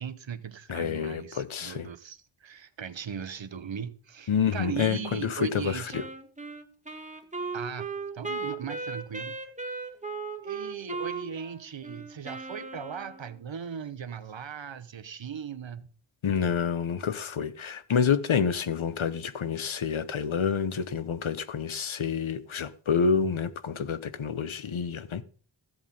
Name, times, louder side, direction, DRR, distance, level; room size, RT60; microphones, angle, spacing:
voice 1, 0.0-5.9 7.5-9.4 10.4-15.9, right 7 dB, 70° right, 1.1 m, -38 dB
voice 2, 0.7-1.9 4.3-6.0 16.2-25.2, left 6 dB, 80° left, 1.0 m, -28 dB
Wind instrument woodwind instrument, 5.9-13.4, right 4 dB, 15° right, 1.7 m, -37 dB
15.0 x 8.1 x 5.4 m
wide cardioid pair, 90°, 47 cm